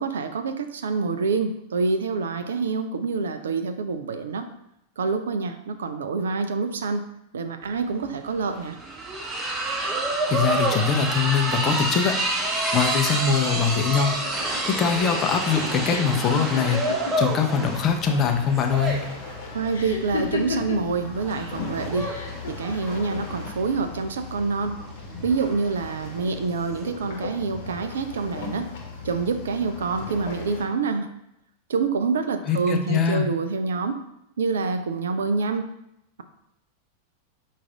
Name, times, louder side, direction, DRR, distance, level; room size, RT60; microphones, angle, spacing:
voice 1, 0.0-4.5 5.0-7.1 7.3-8.8 19.5-22.1 22.5-24.8 25.2-28.7 29.0-31.1 31.7-34.0 34.4-35.7, right 4 dB, 65° right, 8 dB, 0.3 m, -26 dB
sound 1, 7.7-26.9, right 2 dB, 15° right, 0.7 m, -29 dB
voice 2, 10.3-12.1 12.7-14.2 14.7-16.8 17.2-19.0 32.5-33.3, left 6 dB, 30° left, 4 dB, 0.5 m, -22 dB
sound 2, 14.1-17.7 17.9-18.6 19.7-20.9 21.9-22.5, left 4 dB, 70° left, 0.7 m, -32 dB
sound 3, 17.6-30.7, left 4 dB, 45° left, 0.9 m, -38 dB
4.7 x 2.4 x 3.4 m, 0.81 s
figure-of-eight pair, 90°, 0 cm